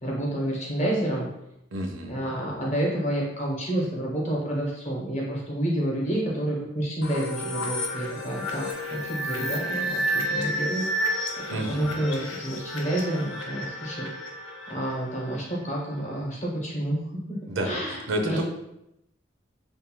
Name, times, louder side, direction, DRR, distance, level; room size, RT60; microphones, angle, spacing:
voice 1, 0.0-1.3 2.1-8.6 8.9-10.8 11.5-14.1 14.7-17.0 17.3-17.4 17.6-18.4, right 1 dB, 35° left, -3 dB, 0.8 m, -29 dB
voice 2, 1.7-2.2 11.5-11.9 17.5-18.4, right 1 dB, 85° right, 3 dB, 0.5 m, -30 dB
sound 1, 7.0-15.6, equal, 80° left, 0.5 m, -31 dB
2.6 x 2.2 x 3.0 m, 0.82 s
head